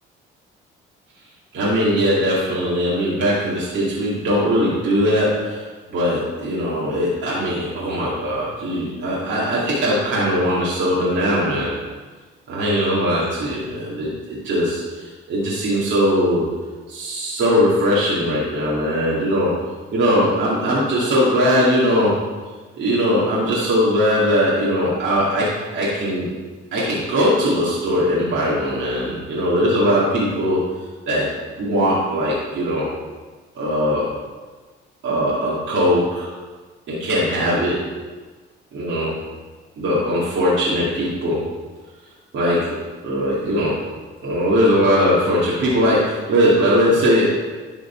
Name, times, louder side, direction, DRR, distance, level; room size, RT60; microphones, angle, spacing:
voice 1, 1.5-5.6 5.9-11.7 12.5-16.5 16.9-19.5 19.9-22.2 22.8-26.3 26.7-30.6 31.1-31.3 31.6-32.9 33.5-34.1 35.0-36.3 36.9-37.8 38.7-39.1 39.8-41.4 42.3-42.8 43.0-43.8 44.2-47.3, equal, 65° right, -7 dB, 2.6 m, -20 dB
11.5 x 5.0 x 4.6 m, 1.4 s
cardioid pair, 105°, 21 cm